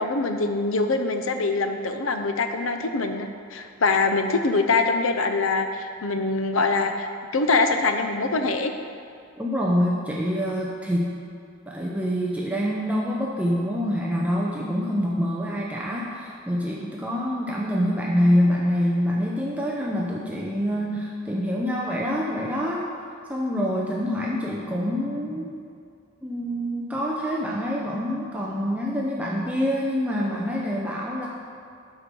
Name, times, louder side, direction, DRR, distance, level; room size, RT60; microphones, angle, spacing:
voice 1, 0.0-7.1 7.3-8.7, left 3 dB, 80° left, 6 dB, 0.7 m, -24 dB
voice 2, 9.4-11.1 11.7-22.8 23.3-25.5 26.2-31.3, equal, 5° right, -4 dB, 0.6 m, -26 dB
12.5 x 4.6 x 5.3 m, 2.4 s
head